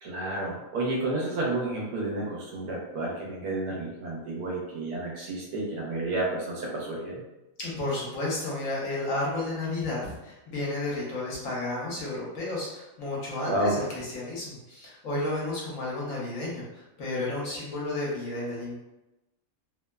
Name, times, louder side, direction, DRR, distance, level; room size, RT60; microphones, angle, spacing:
voice 1, 0.0-7.2 13.4-13.8, right 2 dB, 85° right, -3 dB, 1.2 m, -31 dB
voice 2, 7.6-18.7, left 2 dB, 65° left, -5 dB, 1.2 m, -32 dB
3.0 x 2.0 x 2.2 m, 0.97 s
omnidirectional pair, 1.6 m